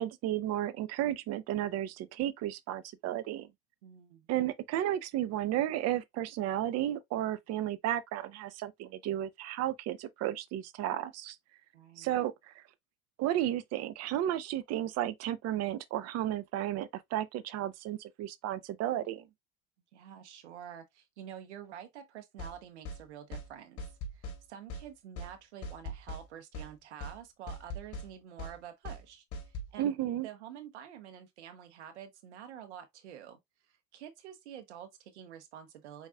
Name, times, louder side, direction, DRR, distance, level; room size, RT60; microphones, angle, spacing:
voice 1, 0.0-3.5 4.3-11.4 12.0-12.6 13.2-19.3 29.8-30.3, right 12 dB, 50° right, 0.8 m, -33 dB
voice 2, 3.8-4.3 11.7-12.1 19.9-23.9 24.1-30.0 30.2-36.1, right 9 dB, 90° right, 1.0 m, -48 dB
sound 1, 22.4-22.6 22.9-23.0 23.3-23.5 23.8-24.4 24.7-24.9 25.2-25.3 25.6-26.2 26.5-26.7 27.0-27.2 27.5-28.1 28.4-28.6 28.9-29.0 29.3-29.7, left 1 dB, 45° left, 2.4 m, -40 dB
4.9 x 4.0 x 2.3 m
supercardioid pair, 95°, 33 cm